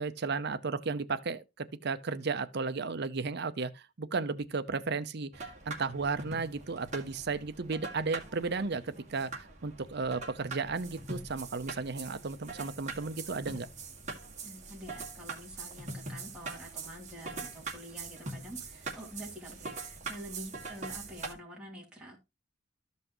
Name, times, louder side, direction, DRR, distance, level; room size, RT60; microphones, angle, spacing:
voice 1, 0.0-8.8 9.1-13.7, right 4 dB, 55° right, 0.7 m, -34 dB
sound 1, 5.3-21.3, right 3 dB, 40° right, 2.1 m, -43 dB
voice 2, 14.4-22.2, equal, 5° right, 3.1 m, -47 dB
13.5 x 5.6 x 3.0 m
head